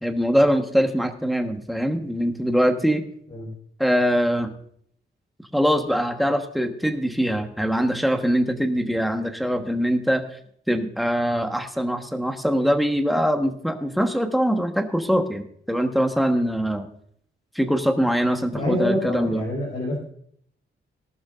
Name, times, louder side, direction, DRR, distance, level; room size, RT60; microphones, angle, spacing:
voice 1, 0.0-3.0 3.8-4.5 5.5-10.2 10.7-16.9 17.5-19.4, equal, ahead, 5 dB, 1.2 m, -22 dB
voice 2, 18.5-20.0, left 1 dB, 40° left, -5 dB, 4.8 m, -26 dB
18.0 x 12.0 x 2.5 m, 0.64 s
wide cardioid pair, 170°, 19 cm